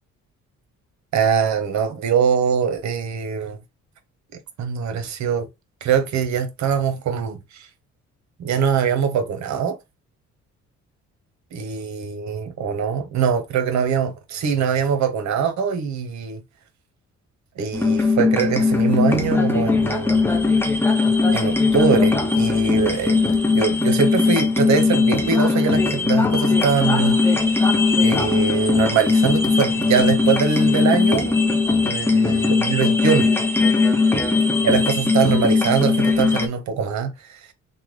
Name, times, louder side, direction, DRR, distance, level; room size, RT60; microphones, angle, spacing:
voice 1, 1.1-3.6 4.6-5.5 5.8-7.7 8.4-9.8 11.5-16.4 17.6-20.2 21.3-23.2 23.5-27.2 28.0-31.3 31.8-33.3 34.6-37.5, right 6 dB, 65° right, 0.8 m, -22 dB
sound 1, 17.7-36.5, left 3 dB, 10° left, 0.7 m, -19 dB
3.3 x 2.2 x 3.1 m
cardioid pair, 90°, 30 cm